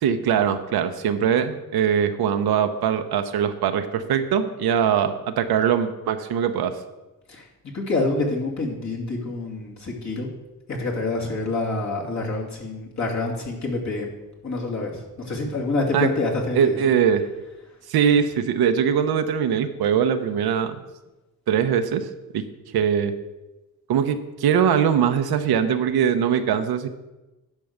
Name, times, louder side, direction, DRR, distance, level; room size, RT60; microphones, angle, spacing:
voice 1, 0.0-6.7 15.9-16.1 16.6-17.2 17.9-20.8 21.5-22.1 22.3-22.4 22.7-23.1 23.9-26.9, right 8 dB, 85° right, 8 dB, 0.9 m, -21 dB
voice 2, 7.7-10.3 10.7-14.1 14.4-16.8, left 2 dB, 50° left, -2 dB, 2.6 m, -27 dB
11.0 x 4.6 x 6.6 m, 1.0 s
cardioid pair, 95°, 36 cm